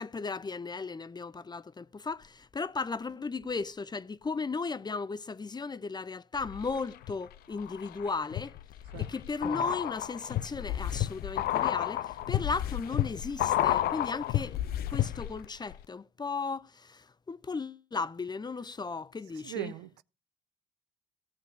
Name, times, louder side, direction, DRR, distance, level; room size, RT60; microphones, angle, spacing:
voice 1, 0.0-8.6 9.0-14.6 14.9-19.7, left 4 dB, 25° left, 0.6 m, -36 dB
sound 1, 6.4-7.1 7.6-15.4 15.7-15.8, left 13 dB, 65° left, 0.6 m, -31 dB
voice 2, 19.4-20.0, right 15 dB, 80° right, 0.5 m, -39 dB
16.5 x 6.5 x 5.1 m
hypercardioid pair, 50°, 17 cm